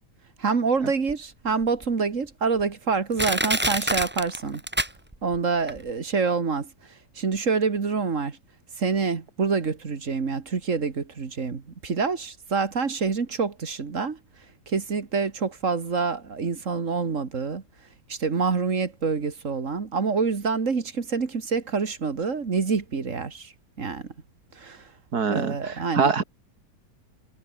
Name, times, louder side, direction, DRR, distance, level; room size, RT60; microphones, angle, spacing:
voice 1, 0.4-4.6 5.2-6.7 7.2-8.4 8.8-14.2 14.7-17.6 18.1-23.5 23.8-24.1 24.5-24.9 25.3-26.1, right 5 dB, 50° right, 2.2 m, -26 dB
Crushing, 1.1-1.2 1.8-1.9 2.6-2.7 3.2-5.4 5.7-5.8, right 1 dB, 5° right, 1.8 m, -26 dB
voice 2, 25.1-26.2, right 5 dB, 70° right, 2.7 m, -24 dB
omnidirectional pair, 1.7 m